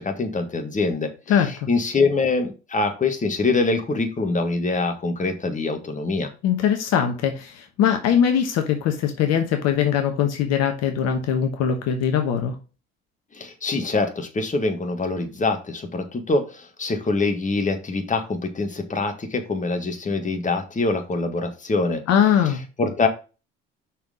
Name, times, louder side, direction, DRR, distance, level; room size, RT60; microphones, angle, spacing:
voice 1, 0.0-6.3 13.3-22.0 22.8-23.1, left 3 dB, 25° left, 1.6 m, -24 dB
voice 2, 6.4-12.6 22.1-22.6, left 8 dB, 60° left, 1.1 m, -21 dB
5.8 x 4.3 x 5.0 m
hypercardioid pair, 60°, 30 cm